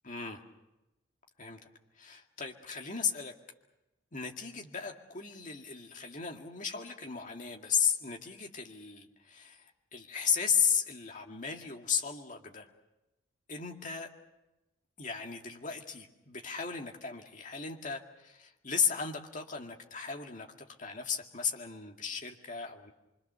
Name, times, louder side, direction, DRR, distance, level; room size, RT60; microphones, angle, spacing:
voice 1, 0.0-0.4 1.4-1.6 2.0-3.3 4.1-12.7 13.5-14.1 15.0-20.5 20.8-22.9, left 7 dB, 35° left, 3 dB, 2.1 m, -35 dB
25.5 x 25.0 x 6.9 m, 0.95 s
head